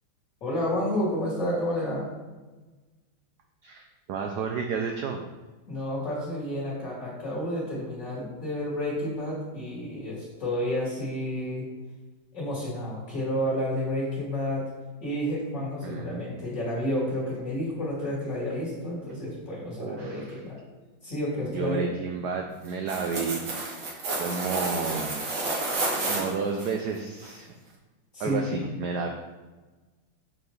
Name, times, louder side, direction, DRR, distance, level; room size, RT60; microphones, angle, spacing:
voice 1, 0.4-2.1 5.7-11.6 12.3-14.6 15.0-20.6 21.0-21.9 28.1-28.6, equal, 40° left, -7 dB, 2.6 m, -30 dB
voice 2, 3.6-5.2 15.8-16.3 19.8-20.4 21.5-23.4 24.2-27.5 28.2-29.1, right 5 dB, 80° right, 3 dB, 0.9 m, -31 dB
sound 1, 22.7-26.7 27.2-27.3, right 2 dB, 65° right, 2.1 m, -30 dB
6.9 x 5.9 x 3.2 m, 1.2 s
omnidirectional pair, 2.3 m